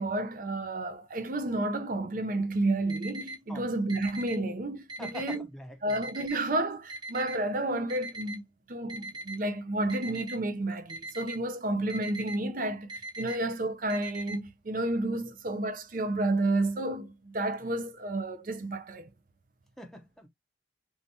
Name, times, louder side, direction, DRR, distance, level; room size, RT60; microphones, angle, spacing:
voice 1, 0.0-5.5 5.8-8.4 8.7-19.1, right 2 dB, 45° right, 0.6 m, -31 dB
Alarm, 2.9-3.3 3.9-4.3 4.9-5.3 5.9-6.3 6.9-7.3 7.9-8.3 8.9-9.3 9.9-10.3 10.9-11.3 11.9-12.4 12.9-13.3 13.9-14.3, right 2 dB, 25° right, 0.8 m, -39 dB
voice 2, 5.0-6.1 13.2-13.3 17.6-17.7 19.8-20.3, equal, ahead, 0.7 m, -45 dB
3.4 x 2.8 x 2.7 m
head